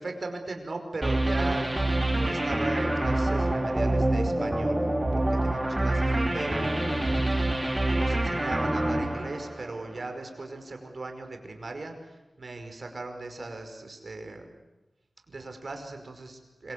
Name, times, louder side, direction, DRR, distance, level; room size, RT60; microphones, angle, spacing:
voice 1, 0.0-4.9 5.1-7.0 7.9-14.5 15.3-16.7, right 2 dB, 55° right, 5 dB, 5.3 m, -38 dB
sound 1, 1.0-10.1, right 1 dB, 20° right, 3.5 m, -26 dB
26.5 x 24.5 x 8.5 m, 1.0 s
wide cardioid pair, 90°, 0 cm